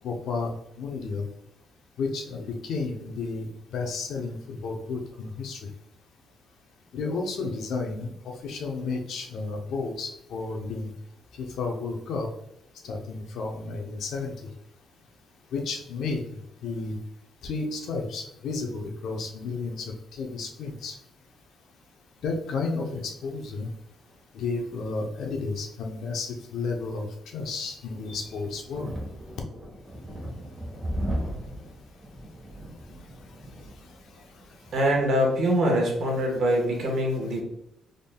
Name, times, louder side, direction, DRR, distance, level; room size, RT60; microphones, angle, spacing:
voice 1, 0.0-1.3 2.0-5.7 6.9-8.1 8.4-10.9 11.3-12.3 12.8-14.5 15.5-17.0 17.4-21.0 22.2-23.7 24.3-28.9 33.8-34.2, left 4 dB, 75° left, 2 dB, 0.7 m, -32 dB
sound 1, 27.6-35.1, equal, 15° right, 1.1 m, -37 dB
voice 2, 34.7-37.4, equal, 65° right, 0 dB, 1.3 m, -24 dB
3.8 x 3.5 x 2.2 m, 0.81 s
cardioid pair, 90°, 0 cm